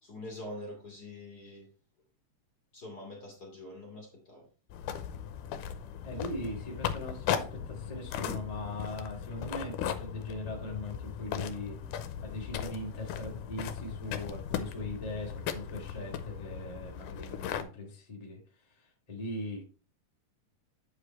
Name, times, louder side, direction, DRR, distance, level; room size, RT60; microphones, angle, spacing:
voice 1, 0.0-1.7 2.7-4.5, left 1 dB, 35° left, -1 dB, 2.0 m, -44 dB
sound 1, 4.7-17.6, left 9 dB, 85° left, 2.3 m, -37 dB
voice 2, 6.0-11.8 12.2-19.6, left 1 dB, 15° left, -2 dB, 1.5 m, -40 dB
8.7 x 4.9 x 4.3 m, 0.36 s
omnidirectional pair, 3.8 m